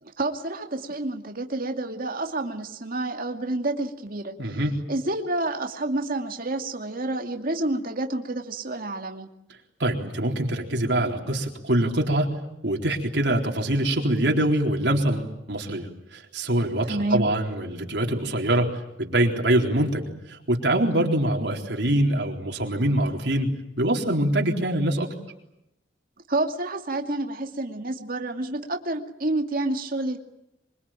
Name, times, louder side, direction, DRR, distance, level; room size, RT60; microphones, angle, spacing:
voice 1, 0.0-4.6 4.9-9.3 16.8-17.3 26.3-30.2, right 2 dB, 50° right, 4 dB, 2.4 m, -29 dB
voice 2, 4.4-4.8 9.8-25.1, right 1 dB, 70° right, 0 dB, 4.0 m, -24 dB
25.0 x 24.0 x 9.1 m, 0.87 s
head